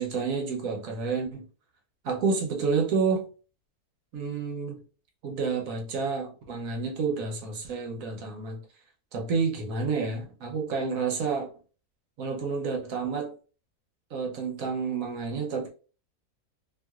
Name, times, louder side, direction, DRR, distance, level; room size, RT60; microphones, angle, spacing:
voice 1, 0.0-1.5 2.0-3.3 4.1-4.8 5.2-8.6 9.1-11.5 12.2-13.3 14.1-15.7, right 5 dB, 65° right, 1.1 m, -29 dB
2.8 x 2.8 x 2.3 m
omnidirectional pair, 1.6 m